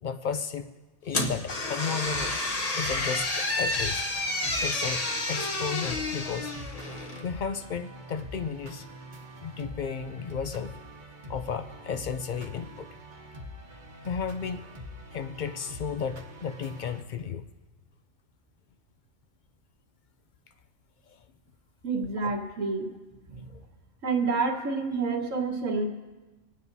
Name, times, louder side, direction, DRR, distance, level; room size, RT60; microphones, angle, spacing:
voice 1, 0.0-0.7 1.0-2.4 2.7-4.0 4.6-6.5 7.2-8.9 9.4-10.8 11.3-12.9 14.0-14.7 15.1-17.5 22.2-22.3 23.5-23.6, left 6 dB, 70° left, 9 dB, 0.4 m, -33 dB
sound 1, 1.1-7.3, left 2 dB, 30° left, 1.0 m, -30 dB
sound 2, 2.1-17.0, left 1 dB, 40° right, 1.2 m, -45 dB
voice 2, 21.8-23.0 23.3-23.6 24.0-25.9, right 4 dB, 75° right, 0 dB, 1.8 m, -28 dB
28.0 x 9.3 x 2.7 m, 1.2 s
omnidirectional pair, 1.4 m